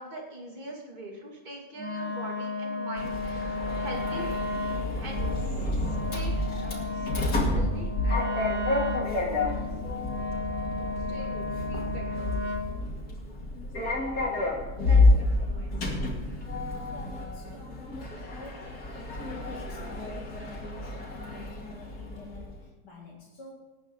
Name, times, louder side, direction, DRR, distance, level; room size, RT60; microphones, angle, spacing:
voice 1, 0.0-4.3 5.0-5.3 6.1-7.1 7.5-8.3 11.1-12.4 14.9-16.0, right 1 dB, 25° right, -1 dB, 2.6 m, -42 dB
Wind instrument woodwind instrument, 1.8-12.8, left 3 dB, 60° right, 1.7 m, -34 dB
Sliding door, 3.0-22.6, left 2 dB, 70° left, 2.8 m, -29 dB
voice 2, 16.9-23.5, left 2 dB, 90° left, -4 dB, 2.8 m, -47 dB
19.0 x 8.9 x 3.8 m, 1.2 s
omnidirectional pair, 1.8 m